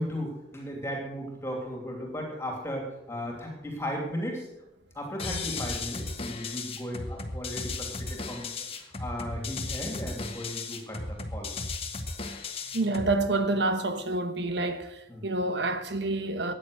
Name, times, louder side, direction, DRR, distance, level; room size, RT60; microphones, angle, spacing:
voice 1, 0.0-4.5 4.9-8.5 8.7-11.5 15.1-15.3, equal, 15° left, 2.9 m, -36 dB
sound 1, 5.2-13.2, left 3 dB, 30° left, 1.4 m, -35 dB
voice 2, 12.7-16.5, right 2 dB, 60° right, 1.2 m, -28 dB
14.0 x 9.2 x 6.6 m
head